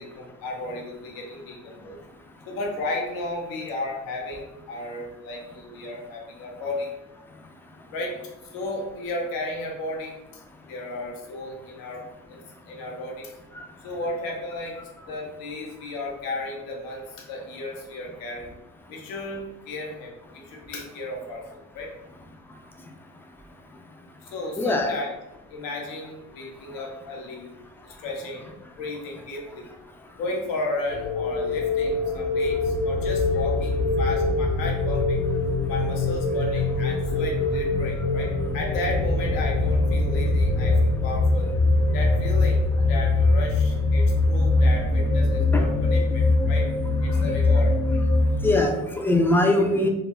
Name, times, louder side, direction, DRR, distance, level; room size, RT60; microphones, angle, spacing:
voice 1, 0.0-2.0 2.5-6.9 7.9-12.0 12.3-12.4 12.7-13.3 13.8-18.5 18.9-21.4 21.7-21.9 24.2-25.1 25.5-27.5 27.8-28.5 28.8-29.6 30.2-35.2 35.7-41.5 41.9-46.7 47.0-47.7, left 2 dB, 90° left, 0 dB, 0.7 m, -34 dB
voice 2, 24.6-24.9 45.5-45.6 48.4-49.9, left 2 dB, 5° left, 3 dB, 0.3 m, -21 dB
sound 1, 30.9-48.7, left 2 dB, 40° left, 0.7 m, -22 dB
2.3 x 2.0 x 3.5 m, 0.97 s
cardioid pair, 80°, 33 cm